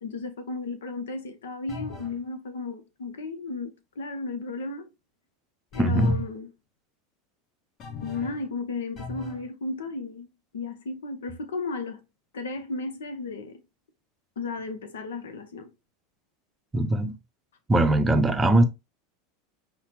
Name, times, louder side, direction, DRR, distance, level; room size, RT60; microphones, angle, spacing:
voice 1, 0.0-4.9 5.7-6.5 8.0-10.3 10.5-12.0 12.3-13.6 14.4-15.7, left 3 dB, 75° left, 0.6 m, -34 dB
sound 1, 1.7-2.2 5.7-6.3 7.8-8.5 9.0-9.5, left 4 dB, 40° left, 1.0 m, -39 dB
voice 2, 5.8-6.2 16.7-17.1 17.7-18.6, right 1 dB, 15° right, 0.6 m, -21 dB
5.5 x 2.0 x 2.9 m
hypercardioid pair, 85°, 0 cm